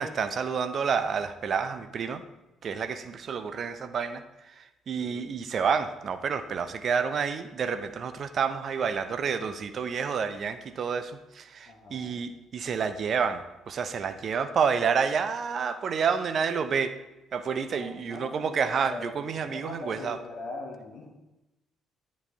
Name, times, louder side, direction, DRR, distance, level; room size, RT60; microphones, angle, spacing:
voice 1, 0.0-2.2 2.6-4.2 4.9-17.0 17.3-20.2, right 6 dB, 45° right, 10 dB, 0.5 m, -29 dB
voice 2, 5.0-5.3 11.7-12.2 17.7-21.1, left 2 dB, 45° left, -2 dB, 1.1 m, -41 dB
9.7 x 4.1 x 3.6 m, 0.98 s
figure-of-eight pair, 45°, 0 cm